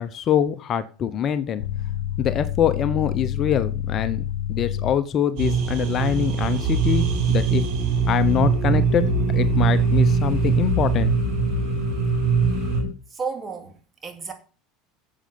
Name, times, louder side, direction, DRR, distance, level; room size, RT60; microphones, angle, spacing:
voice 1, 0.0-1.6 2.2-7.6 8.1-9.0 9.3-11.1, left 9 dB, 45° left, 0.9 m, -24 dB
sound 1, 1.6-5.0 8.9-12.9, left 10 dB, 80° left, 1.0 m, -30 dB
sound 2, 5.4-12.8, right 5 dB, 65° right, 6.7 m, -22 dB
voice 2, 13.1-14.3, right 5 dB, 30° right, 2.7 m, -32 dB
8.8 x 7.7 x 7.0 m
hypercardioid pair, 95°, 0 cm